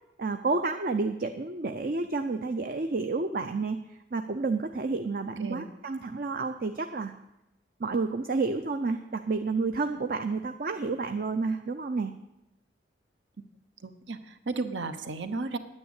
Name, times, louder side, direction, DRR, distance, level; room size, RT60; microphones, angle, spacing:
voice 1, 0.2-3.8 4.1-7.1 7.8-12.1, right 3 dB, 50° right, 7 dB, 0.6 m, -30 dB
voice 2, 13.8-15.6, right 3 dB, 75° right, 10 dB, 1.0 m, -34 dB
9.9 x 9.4 x 8.2 m, 0.90 s
head